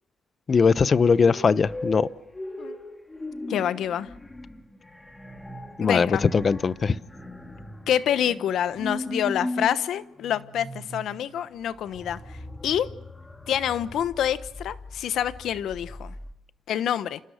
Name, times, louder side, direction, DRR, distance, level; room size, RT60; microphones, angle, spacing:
voice 1, 0.5-2.1 5.8-7.0, left 5 dB, 40° left, 0.9 m, -20 dB
sound 1, 1.0-16.3, left 1 dB, 15° left, 3.4 m, -39 dB
voice 2, 3.5-4.1 5.8-6.2 7.9-12.4 12.6-12.9 13.5-16.1 16.7-17.2, left 10 dB, 75° left, 1.1 m, -27 dB
30.0 x 27.5 x 6.6 m
cardioid pair, 90°, 0 cm